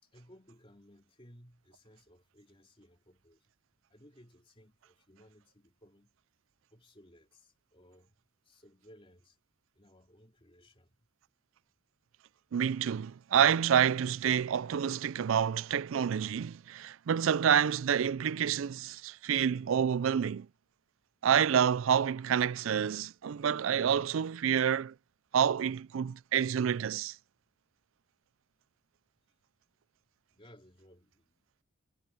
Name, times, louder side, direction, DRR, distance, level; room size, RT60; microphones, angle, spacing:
voice 1, 0.0-3.5 3.9-6.1 6.7-8.2 8.4-9.4 9.7-11.0 30.3-31.5, equal, 25° left, 2.9 m, -60 dB
voice 2, 12.5-20.5 21.2-24.9 25.3-27.2, right 8 dB, 70° right, 0.4 m, -28 dB
head